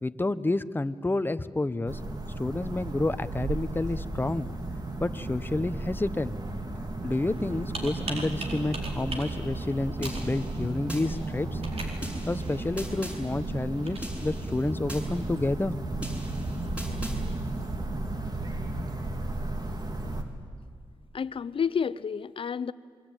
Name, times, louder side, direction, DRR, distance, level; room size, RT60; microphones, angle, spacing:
voice 1, 0.0-2.0 2.4-4.5 5.0-6.3 7.0-11.6 12.3-15.8, left 2 dB, 20° left, 12 dB, 1.0 m, -29 dB
sound 1, 1.9-20.2, right 2 dB, 40° right, 3.1 m, -34 dB
Computer keyboard, 7.1-14.0, right 3 dB, 65° right, 4.3 m, -41 dB
sound 2, 10.0-11.0 12.0-13.2 14.0-15.0 16.0-17.2, equal, 10° right, 7.1 m, -41 dB
voice 2, 21.1-22.7, left 6 dB, 55° left, 17 dB, 0.8 m, -30 dB
27.5 x 22.5 x 9.2 m, 2.1 s
cardioid pair, 75°, 11 cm